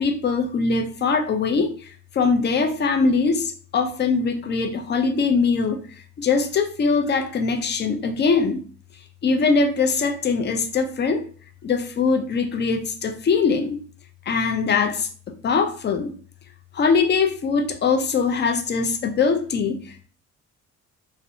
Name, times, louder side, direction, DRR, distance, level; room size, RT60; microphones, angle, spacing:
voice 1, 0.0-5.8 6.2-8.6 9.2-11.2 11.6-13.8 14.3-16.1 16.7-20.0, left 4 dB, 35° left, 6 dB, 0.5 m, -22 dB
2.7 x 2.1 x 2.6 m, 0.43 s
cardioid pair, 90°, 30 cm